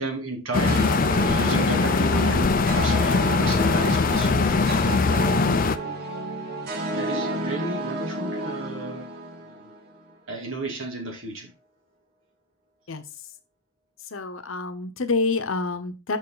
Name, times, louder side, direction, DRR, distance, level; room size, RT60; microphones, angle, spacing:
voice 1, 0.0-4.8 5.6-6.0 6.9-9.1 9.5-9.7 10.3-11.5, right 2 dB, 65° right, 1 dB, 2.6 m, -32 dB
sound 1, 0.5-5.8, left 4 dB, 40° left, 0.4 m, -21 dB
sound 2, 0.7-10.0, right 2 dB, 50° right, 1.8 m, -31 dB
voice 2, 14.1-16.2, left 3 dB, 70° left, 10 dB, 0.9 m, -27 dB
6.5 x 6.2 x 3.9 m, 0.27 s
head